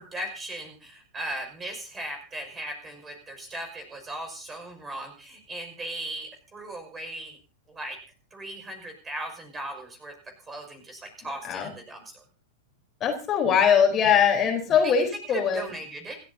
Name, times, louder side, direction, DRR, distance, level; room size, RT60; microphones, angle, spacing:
voice 1, 0.0-7.4 7.7-8.0 8.3-12.2 14.8-14.9 15.3-16.2, right 1 dB, 15° right, 5 dB, 5.8 m, -38 dB
voice 2, 13.0-15.6, left 7 dB, 25° left, 2 dB, 4.1 m, -21 dB
28.0 x 13.5 x 2.8 m, 0.34 s
figure-of-eight pair, 95°, 0 cm